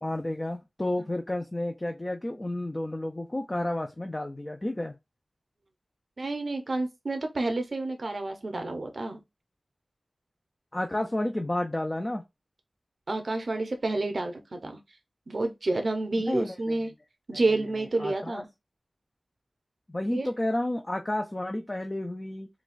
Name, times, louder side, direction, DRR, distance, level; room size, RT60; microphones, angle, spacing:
voice 1, 0.0-4.9 10.7-12.2 16.3-16.8 17.3-17.4 18.0-18.4 19.9-22.5, left 1 dB, 30° left, 0.5 m, -31 dB
voice 2, 6.2-9.2 13.1-14.8 15.3-16.9 17.3-18.5 20.1-20.3, right 2 dB, 65° right, 0.7 m, -29 dB
3.9 x 2.4 x 2.5 m
wide cardioid pair, 75°, 0 cm